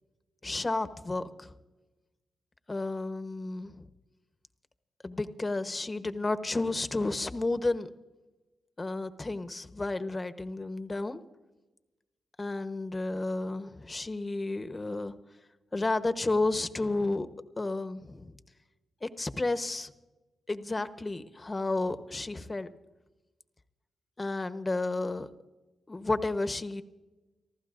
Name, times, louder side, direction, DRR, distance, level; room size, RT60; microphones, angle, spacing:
voice 1, 0.4-1.6 2.7-3.8 5.0-7.9 8.8-11.2 12.4-15.1 15.7-17.3 17.6-18.3 19.0-19.9 20.5-22.7 24.2-25.3 25.9-26.8, left 2 dB, 30° left, 10 dB, 1.1 m, -32 dB
30.0 x 14.5 x 2.6 m, 1.1 s
supercardioid pair, 45°, 0 cm